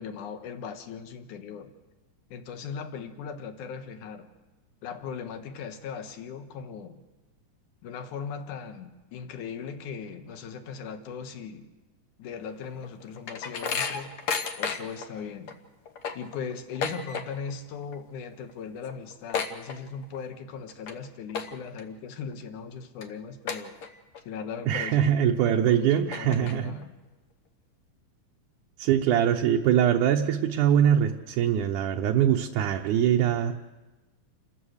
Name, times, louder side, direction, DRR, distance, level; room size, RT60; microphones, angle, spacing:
voice 1, 0.0-1.7 2.3-4.3 4.8-7.0 7.8-11.7 12.2-14.2 14.6-15.5 16.1-23.8 24.3-25.1 25.4-27.0 29.1-29.2, left 6 dB, 75° left, 8 dB, 2.7 m, -38 dB
sound 1, 12.6-15.1 15.5-15.6 15.9-17.6 17.8-18.2 18.5-18.6 18.8-20.2 20.7-20.9 21.3-21.8 22.3-22.4 23.0-23.1 23.5-24.2 24.6-24.7 25.5-25.6 25.9-26.8, left 5 dB, 60° left, 1.6 m, -33 dB
voice 2, 24.7-26.8 28.8-33.5, right 9 dB, 75° right, 2 dB, 2.3 m, -23 dB
29.0 x 14.5 x 6.4 m, 1.1 s
omnidirectional pair, 3.7 m